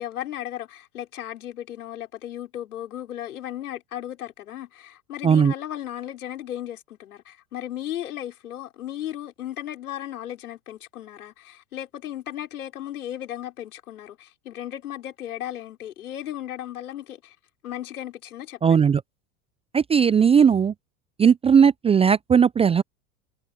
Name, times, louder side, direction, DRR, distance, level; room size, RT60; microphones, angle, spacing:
voice 1, 0.0-17.4 17.6-18.9, left 12 dB, 75° left, 5.5 m, -35 dB
voice 2, 18.6-19.0 19.7-20.7 21.2-22.8, right 7 dB, 15° right, 0.6 m, -17 dB
hypercardioid pair, 90°, 44 cm